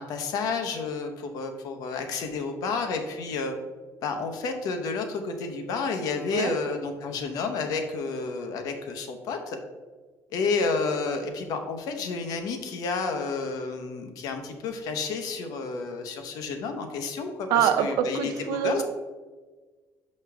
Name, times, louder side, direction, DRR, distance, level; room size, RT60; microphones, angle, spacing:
voice 1, 0.0-3.6 4.0-9.6 10.3-18.8, left 4 dB, 70° left, 6 dB, 0.9 m, -30 dB
voice 2, 17.5-18.8, right 8 dB, 90° right, 8 dB, 0.5 m, -25 dB
6.2 x 5.4 x 3.4 m, 1.3 s
cardioid pair, 140°, 7 cm